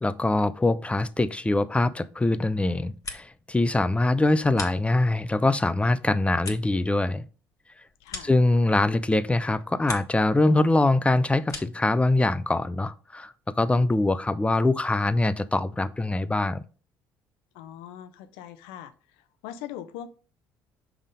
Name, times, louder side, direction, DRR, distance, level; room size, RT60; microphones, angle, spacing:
voice 1, 0.0-7.3 8.2-16.6, left 2 dB, 15° left, 0.5 m, -23 dB
sound 1, 2.7-3.6 3.9-5.3 5.7-9.0 9.4-10.3 10.6-11.9, left 4 dB, 40° left, 1.5 m, -42 dB
voice 2, 8.0-8.3 17.5-20.1, left 10 dB, 80° left, 0.6 m, -41 dB
5.4 x 3.5 x 5.1 m
hypercardioid pair, 60°, 9 cm